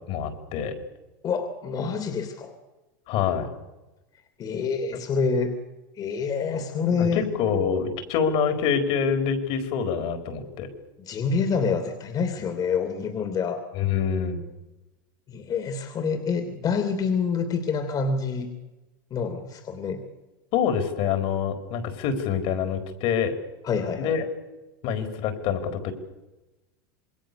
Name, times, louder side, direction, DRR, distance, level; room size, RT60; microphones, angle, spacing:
voice 1, 0.1-0.7 3.1-3.5 7.0-10.7 13.7-14.4 20.5-23.4 24.0-24.3 24.8-25.9, left 7 dB, 55° left, 8 dB, 4.4 m, -26 dB
voice 2, 1.2-2.6 4.4-5.5 5.9-7.3 11.0-13.6 15.3-18.5 19.1-20.0 23.6-24.1, left 5 dB, 35° left, 7 dB, 3.1 m, -27 dB
27.5 x 21.5 x 7.0 m, 1.1 s
hypercardioid pair, 105°, 11 cm